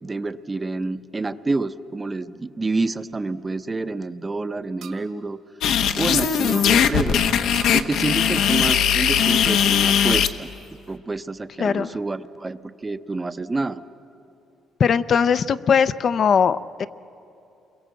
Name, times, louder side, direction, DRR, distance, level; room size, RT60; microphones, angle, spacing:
voice 1, 0.0-5.4 6.0-7.2 7.7-10.5 10.9-13.8, right 3 dB, 20° right, 11 dB, 0.6 m, -28 dB
sound 1, 4.8-5.1 6.5-6.7 7.5-7.9 9.6-9.9, right 9 dB, 75° right, 2.1 m, -40 dB
sound 2, 5.6-10.3, left 8 dB, 80° left, 1.0 m, -19 dB
voice 2, 14.8-16.9, left 7 dB, 50° left, 12 dB, 0.5 m, -20 dB
28.5 x 22.5 x 7.6 m, 2.8 s
cardioid pair, 120°, 0 cm